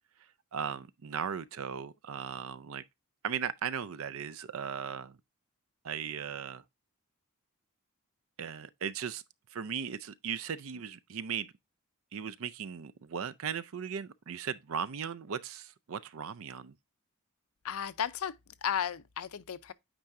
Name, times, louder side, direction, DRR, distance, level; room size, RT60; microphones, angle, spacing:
voice 1, 0.5-2.8 3.2-5.2 5.8-6.6 8.4-9.2 9.5-11.5 12.1-16.7, right 7 dB, 65° right, 0.5 m, -37 dB
voice 2, 17.6-19.7, left 8 dB, 75° left, 0.5 m, -34 dB
8.9 x 4.7 x 2.6 m
head